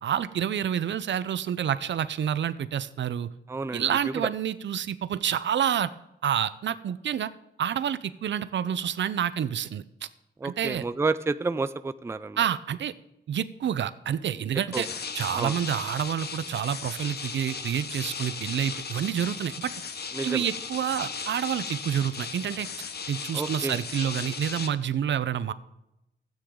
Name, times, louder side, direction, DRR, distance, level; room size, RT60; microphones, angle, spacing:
voice 1, 0.0-3.3 3.7-5.9 6.2-7.3 7.6-10.1 10.4-10.8 12.4-12.9 13.3-14.9 15.1-19.7 20.2-22.7 23.1-25.5, right 9 dB, 70° right, 14 dB, 0.6 m, -28 dB
voice 2, 3.5-3.8 10.4-12.4 14.7-14.8 15.3-15.6 20.1-20.4 23.3-23.8, right 3 dB, 15° right, 14 dB, 0.4 m, -30 dB
sound 1, 14.7-24.7, left 5 dB, 55° left, 0.9 m, -36 dB
13.0 x 8.8 x 3.7 m, 0.88 s
cardioid pair, 80°, 20 cm